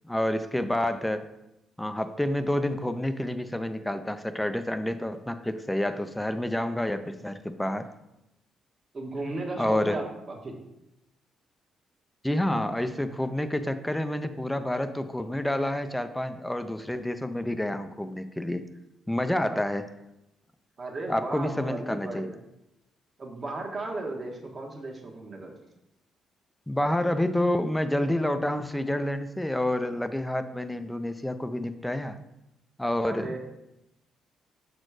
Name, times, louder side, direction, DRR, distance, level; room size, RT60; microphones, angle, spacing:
voice 1, 0.0-1.3 1.8-7.9 9.6-10.0 12.2-18.7 19.1-19.8 21.1-22.3 26.7-32.2 32.8-33.4, left 1 dB, 5° left, 9 dB, 0.5 m, -28 dB
voice 2, 8.9-10.5 19.5-19.7 20.8-22.4 23.2-25.5 33.0-33.4, right 2 dB, 40° right, 1 dB, 1.4 m, -35 dB
6.4 x 4.3 x 4.7 m, 0.88 s
cardioid pair, 90°, 0 cm